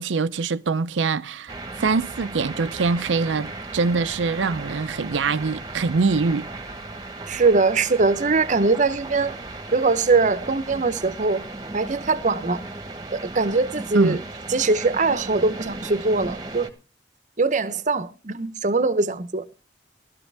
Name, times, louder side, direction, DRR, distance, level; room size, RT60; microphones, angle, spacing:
voice 1, 0.0-6.5 13.9-14.2, right 4 dB, 85° right, 0.5 m, -24 dB
sound 1, 1.5-16.7, right 2 dB, 20° right, 1.2 m, -36 dB
voice 2, 7.3-9.4 9.7-11.5 11.7-12.6 13.1-14.2 14.5-16.7 17.4-19.4, right 3 dB, 40° right, 0.8 m, -22 dB
15.5 x 12.5 x 3.4 m
head